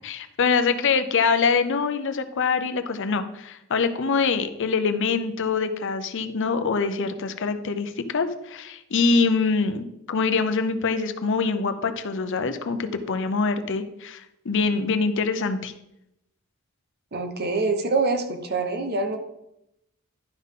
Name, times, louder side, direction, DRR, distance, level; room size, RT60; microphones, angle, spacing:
voice 1, 0.0-15.7, left 4 dB, 60° left, 9 dB, 0.7 m, -24 dB
voice 2, 17.1-19.2, right 3 dB, 50° right, 7 dB, 1.0 m, -25 dB
11.0 x 5.6 x 3.7 m, 0.85 s
head